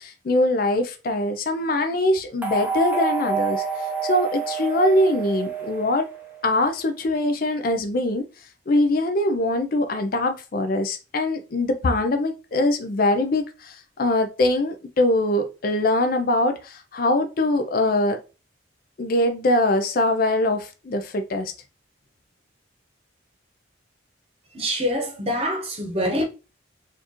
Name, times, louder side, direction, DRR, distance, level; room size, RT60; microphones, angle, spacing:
voice 1, 0.0-3.6 4.0-6.1 6.4-8.3 8.7-18.2 19.0-21.5, left 1 dB, 45° left, 0.4 m, -22 dB
sound 1, 2.4-6.6, right 6 dB, 10° right, 0.6 m, -28 dB
voice 2, 24.5-26.2, equal, 30° right, 0.9 m, -25 dB
4.3 x 2.5 x 2.9 m
head